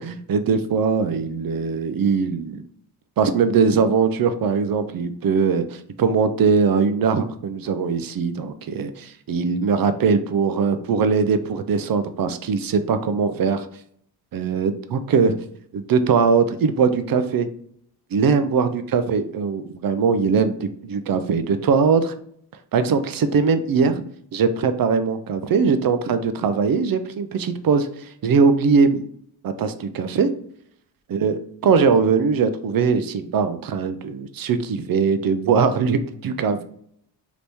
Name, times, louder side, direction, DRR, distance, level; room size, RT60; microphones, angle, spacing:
voice 1, 0.0-2.6 3.2-13.7 14.3-15.4 15.7-17.5 18.1-22.1 22.7-24.0 24.3-29.0 29.4-30.3 31.1-36.6, right 5 dB, 55° right, 10 dB, 0.5 m, -21 dB
3.0 x 2.6 x 3.4 m, 0.65 s
cardioid pair, 55°, 43 cm